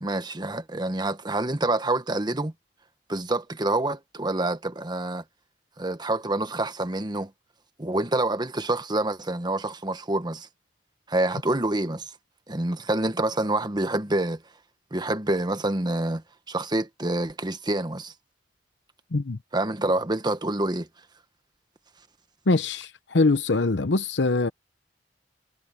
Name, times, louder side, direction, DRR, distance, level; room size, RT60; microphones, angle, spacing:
voice 1, 0.0-2.5 3.1-5.2 5.8-7.3 7.8-10.5 11.1-12.1 12.5-14.4 14.9-18.1 19.5-20.9, right 2 dB, 25° right, 1.3 m, -27 dB
voice 2, 22.5-24.5, left 3 dB, 90° left, 0.8 m, -23 dB
head